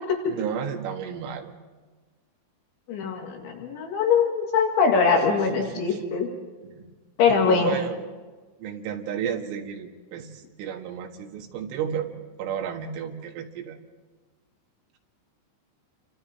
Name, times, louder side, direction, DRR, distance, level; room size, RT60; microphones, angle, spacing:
voice 1, 0.3-1.5 5.1-6.1 6.6-6.9 7.3-8.1 8.6-12.1 12.4-13.8, right 8 dB, 80° right, 2 dB, 4.2 m, -33 dB
voice 2, 2.9-6.3 7.2-7.8, left 5 dB, 70° left, 1 dB, 4.3 m, -22 dB
29.0 x 25.0 x 4.4 m, 1.3 s
omnidirectional pair, 5.7 m